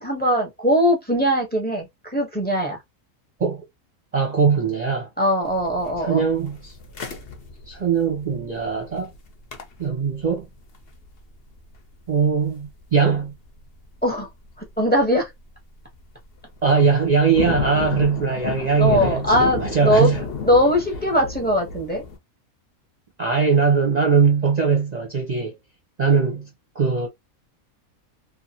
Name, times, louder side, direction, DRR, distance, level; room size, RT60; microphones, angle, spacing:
voice 1, 0.0-2.8 5.2-6.2 14.0-14.3 14.8-15.3 18.6-20.1 20.4-22.0, equal, 10° left, 0.7 m, -20 dB
voice 2, 4.1-5.1 6.0-6.7 7.7-9.1 9.8-10.5 12.1-13.3 16.6-20.2 23.2-25.5 26.0-26.5 26.7-27.1, right 5 dB, 40° right, 0.7 m, -20 dB
sound 1, 5.4-13.5 13.7-13.8 14.5-14.8 15.2-15.6 15.9-16.0 16.3-22.2, left 5 dB, 50° left, 0.8 m, -32 dB
2.9 x 2.4 x 2.7 m
omnidirectional pair, 1.5 m